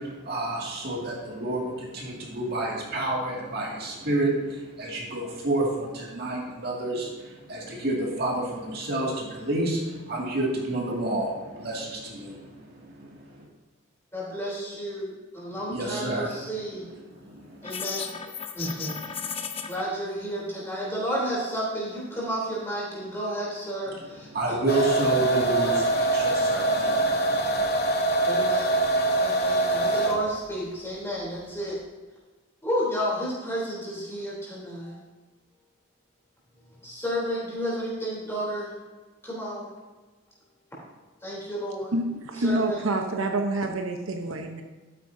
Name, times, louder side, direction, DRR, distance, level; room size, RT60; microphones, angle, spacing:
voice 1, 0.0-13.5 15.7-16.4 16.8-17.7 23.9-27.7, right 2 dB, 50° right, -3 dB, 2.2 m, -30 dB
voice 2, 14.1-16.9 17.6-18.0 18.5-19.0 19.7-25.0 28.3-28.9 29.2-31.8 32.6-35.0 36.8-38.7 39.2-39.7 41.2-41.9 42.4-42.8, equal, 10° left, -6 dB, 3.3 m, -31 dB
sound 1, 17.6-19.8, left 6 dB, 30° left, 0.6 m, -34 dB
sound 2, 24.7-30.3, right 2 dB, 50° left, 0.9 m, -24 dB
voice 3, 41.9-44.6, right 2 dB, 80° right, 4 dB, 0.9 m, -27 dB
13.0 x 9.0 x 2.7 m, 1.3 s
head